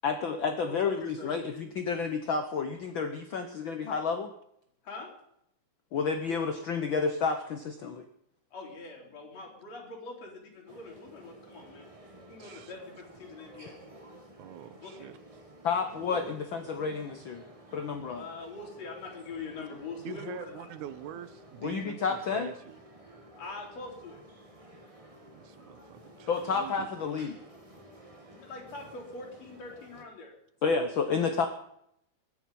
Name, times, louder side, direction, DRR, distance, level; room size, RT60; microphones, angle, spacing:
voice 1, 0.0-4.3 5.9-8.1 15.6-17.4 17.7-18.2 21.6-22.5 26.3-27.4 30.6-31.5, left 5 dB, 80° left, 7 dB, 1.1 m, -30 dB
voice 2, 0.7-1.3 4.8-5.1 8.5-11.9 12.3-13.8 14.8-15.1 16.1-16.2 18.1-20.7 23.4-24.2 28.3-30.3, left 3 dB, 55° left, -1 dB, 4.3 m, -43 dB
sound 1, 10.7-30.0, right 1 dB, 15° right, 1.1 m, -53 dB
voice 3, 12.4-12.7 14.4-15.2 16.0-16.3 16.6-16.7 20.0-22.8 25.3-26.9, right 11 dB, 80° right, 13 dB, 2.2 m, -45 dB
21.0 x 9.1 x 5.4 m, 0.74 s
omnidirectional pair, 3.6 m